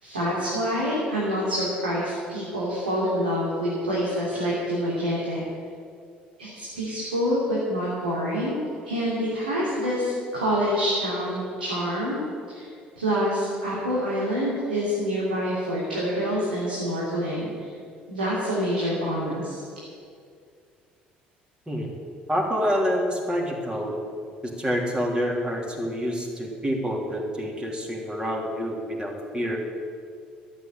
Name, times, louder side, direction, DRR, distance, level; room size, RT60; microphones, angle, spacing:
voice 1, 0.0-5.4 6.4-8.6 8.8-12.2 12.5-12.7 13.0-17.7 18.1-19.6, equal, 85° right, -7 dB, 3.0 m, -26 dB
voice 2, 22.3-24.0 24.4-29.6, equal, 20° right, 0 dB, 3.3 m, -27 dB
13.0 x 8.7 x 9.0 m, 2.3 s
figure-of-eight pair, 55°, 5 cm